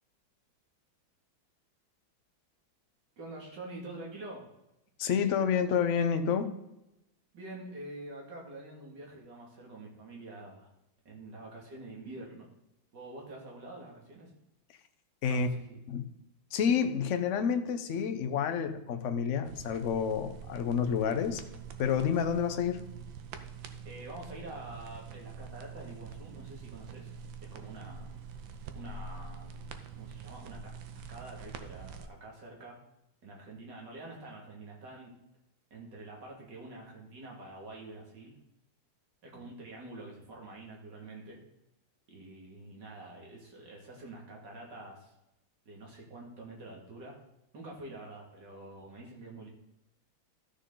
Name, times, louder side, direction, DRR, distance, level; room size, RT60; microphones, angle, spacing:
voice 1, 3.2-4.4 7.3-10.7 11.0-12.5 12.9-14.3 15.3-15.8 23.8-27.1 27.4-28.1 28.7-29.5 30.0-30.6 30.9-32.8 33.2-35.1 35.7-38.4 39.2-41.4 42.1-45.1 45.7-47.2 47.5-49.5, right 2 dB, 60° right, -2 dB, 2.8 m, -46 dB
voice 2, 5.0-6.5 15.2-15.5 15.9-16.0 16.5-21.4 21.8-22.8, left 7 dB, 60° left, 9 dB, 0.8 m, -29 dB
sound 1, 19.4-32.1, right 6 dB, 75° right, 1.5 m, -45 dB
13.0 x 6.5 x 3.8 m, 0.88 s
omnidirectional pair, 2.2 m